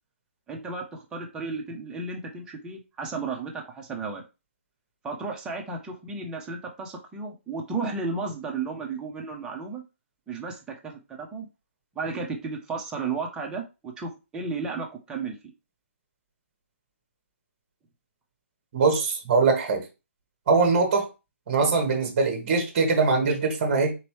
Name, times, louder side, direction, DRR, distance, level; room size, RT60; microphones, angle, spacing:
voice 1, 0.5-4.2 5.0-9.8 10.3-11.5 11.9-15.4, right 4 dB, 10° right, 0.7 m, -33 dB
voice 2, 18.7-19.8 20.5-21.1 21.5-23.9, right 4 dB, 40° right, 1.2 m, -22 dB
4.0 x 3.0 x 3.1 m
hypercardioid pair, 145°, 7 cm